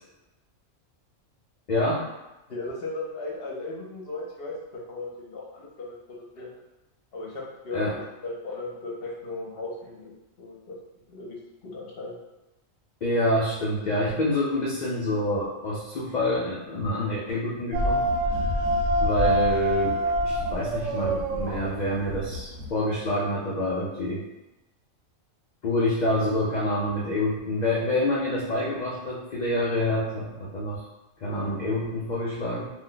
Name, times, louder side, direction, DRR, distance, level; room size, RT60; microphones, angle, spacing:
voice 1, 1.7-2.1 7.7-7.9 13.0-18.0 19.0-24.2 25.6-30.8 31.2-32.7, left 1 dB, 75° left, -5 dB, 0.4 m, -27 dB
voice 2, 2.5-6.5 7.1-10.8 11.1-12.2, left 2 dB, 55° left, -3 dB, 0.8 m, -37 dB
sound 1, 17.7-22.7, right 1 dB, 75° right, 0.9 m, -25 dB
2.5 x 2.0 x 3.8 m, 0.97 s
omnidirectional pair, 1.4 m